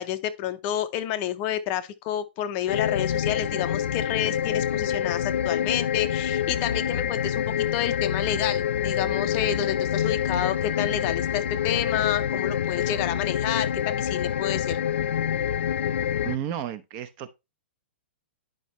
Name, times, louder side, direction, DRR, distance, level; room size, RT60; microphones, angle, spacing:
voice 1, 0.0-14.8, left 11 dB, 30° left, 0.7 m, -29 dB
sound 1, 2.7-16.4, left 9 dB, 85° left, 0.4 m, -26 dB
voice 2, 16.2-17.3, right 10 dB, 30° right, 0.8 m, -32 dB
10.5 x 5.3 x 3.1 m
hypercardioid pair, 160°, 6 cm